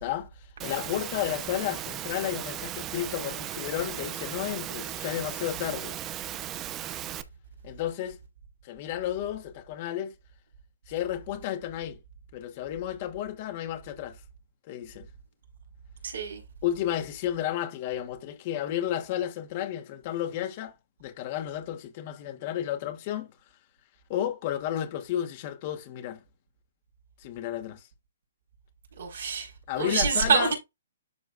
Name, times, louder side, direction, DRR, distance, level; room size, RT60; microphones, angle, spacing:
voice 1, 0.0-5.9 7.6-8.2 8.6-10.1 10.9-12.0 12.3-14.2 14.7-15.1 16.6-20.7 21.0-23.3 24.1-26.2 27.2-27.9 29.7-30.5, left 11 dB, 40° left, 2.4 m, -32 dB
Engine / Mechanisms, 0.6-7.2, right 12 dB, 20° right, 0.7 m, -36 dB
voice 2, 16.0-16.4 29.0-29.5 29.8-30.5, right 5 dB, 65° right, 4.3 m, -26 dB
11.5 x 4.6 x 2.4 m
hypercardioid pair, 140°, 0 cm